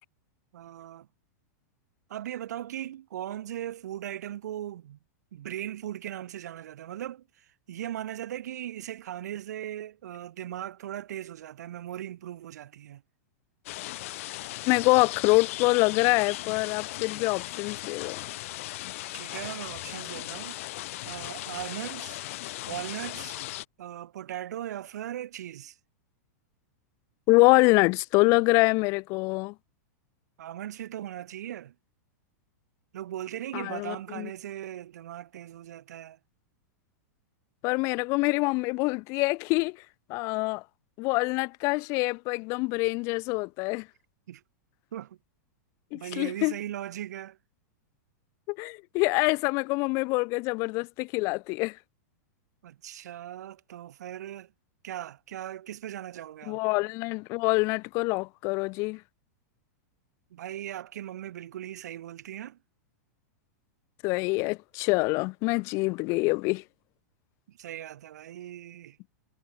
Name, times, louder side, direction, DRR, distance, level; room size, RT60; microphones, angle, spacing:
voice 1, 0.5-1.1 2.1-5.0 5.3-13.0 19.1-20.6 21.0-22.2 22.6-23.4 23.8-25.8 30.4-31.7 32.9-36.2 44.3-44.4 44.9-45.2 45.9-47.4 52.6-54.5 54.8-56.6 60.3-62.6 67.5-69.0, right 12 dB, 75° right, 3.0 m, -38 dB
sound 1, 13.7-23.7, left 18 dB, 55° left, 1.1 m, -37 dB
voice 2, 14.7-18.2 27.3-29.5 33.5-34.3 37.6-39.8 40.1-40.6 41.0-43.9 45.9-46.5 48.5-51.8 56.5-59.0 64.0-66.6, left 26 dB, 35° left, 0.9 m, -25 dB
supercardioid pair, 165°, 9 cm